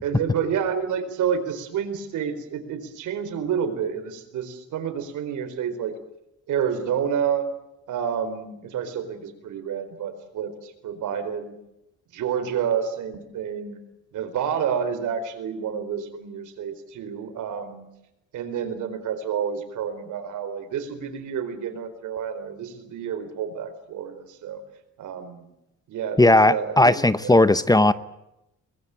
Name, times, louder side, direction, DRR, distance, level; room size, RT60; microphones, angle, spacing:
voice 1, 0.0-5.9 6.5-7.5 7.9-11.5 12.1-13.8 14.1-17.9 18.3-24.6 25.0-25.5 25.9-27.4, right 7 dB, 80° right, 9 dB, 4.4 m, -29 dB
voice 2, 26.2-27.9, left 2 dB, 10° left, 14 dB, 0.9 m, -16 dB
23.0 x 21.0 x 8.9 m, 0.88 s
cardioid pair, 90°, 30 cm